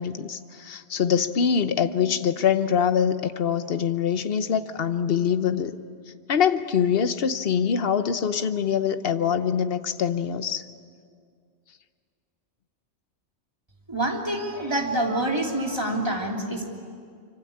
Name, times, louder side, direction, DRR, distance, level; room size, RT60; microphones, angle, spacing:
voice 1, 0.0-5.8 6.3-10.6, left 7 dB, 55° left, 10 dB, 1.1 m, -24 dB
voice 2, 13.9-16.7, right 1 dB, 20° right, 0 dB, 3.0 m, -26 dB
25.5 x 25.0 x 8.7 m, 2.2 s
omnidirectional pair, 1.2 m